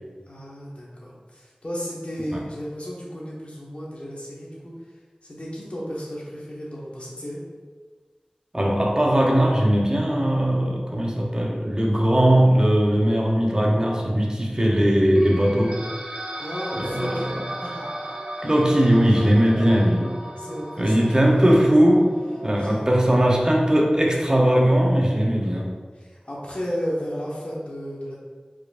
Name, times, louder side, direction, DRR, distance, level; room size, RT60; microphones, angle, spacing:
voice 1, 0.3-4.9 5.2-7.4 16.4-18.2 19.0-19.7 20.4-21.1 21.4-21.7 22.6-23.2 25.4-25.6 25.9-28.2, equal, 55° left, -5 dB, 1.2 m, -34 dB
voice 2, 8.5-15.8 16.7-17.2 18.4-20.1 20.8-22.1 22.4-25.7, equal, 30° right, -1 dB, 0.6 m, -19 dB
sound 1, 15.2-22.8, right 1 dB, 60° right, 0.8 m, -36 dB
4.7 x 4.4 x 2.4 m, 1.5 s
wide cardioid pair, 55°, 3 cm